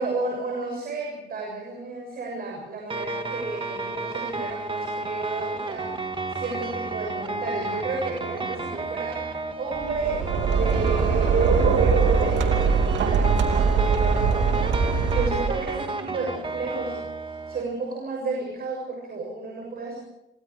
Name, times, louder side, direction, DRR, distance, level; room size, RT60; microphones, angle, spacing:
voice 1, 0.0-10.3 10.6-17.0 17.3-20.0, right 3 dB, 55° right, 0 dB, 6.9 m, -33 dB
sound 1, 2.9-17.6, right 3 dB, 25° right, 2.2 m, -32 dB
sound 2, 9.8-15.8, right 5 dB, 80° right, 2.9 m, -22 dB
27.0 x 24.0 x 4.8 m, 0.94 s
cardioid pair, 115°, 19 cm